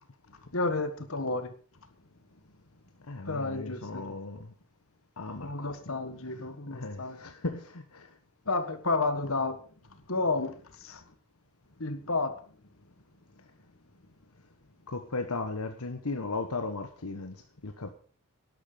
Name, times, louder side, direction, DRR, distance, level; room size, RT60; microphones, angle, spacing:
voice 1, 0.5-1.5 3.2-4.1 5.4-7.2 8.4-9.6 10.1-11.0 11.8-12.3, left 3 dB, 65° left, 9 dB, 1.6 m, -31 dB
voice 2, 3.1-4.4 5.2-5.5 6.7-8.1 14.9-17.3 17.6-17.9, left 3 dB, 80° left, 6 dB, 1.3 m, -36 dB
12.0 x 11.0 x 5.2 m, 0.42 s
head